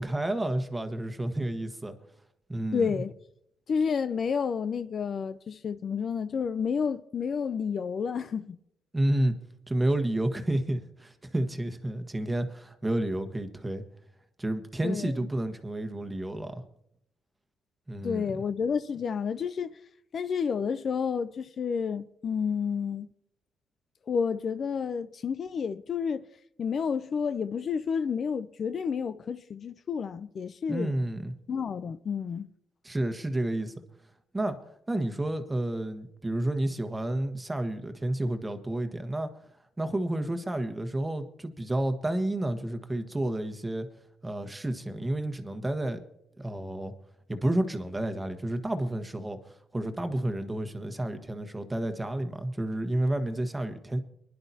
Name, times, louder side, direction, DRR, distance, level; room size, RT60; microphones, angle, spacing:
voice 1, 0.0-1.9 2.5-2.9 8.9-9.3 9.7-13.8 14.4-16.5 17.9-18.4 30.7-31.3 32.8-33.7 34.3-34.6 34.9-39.3 39.8-43.9 44.2-46.0 46.4-46.9 47.3-54.0, right 1 dB, 15° right, 1.4 m, -30 dB
voice 2, 2.7-3.1 3.7-8.6 14.8-15.2 18.0-19.8 20.1-23.1 24.1-26.3 26.6-30.9 31.5-32.5, left 6 dB, 50° left, 0.5 m, -30 dB
24.0 x 11.0 x 2.8 m
cardioid pair, 90°, 0 cm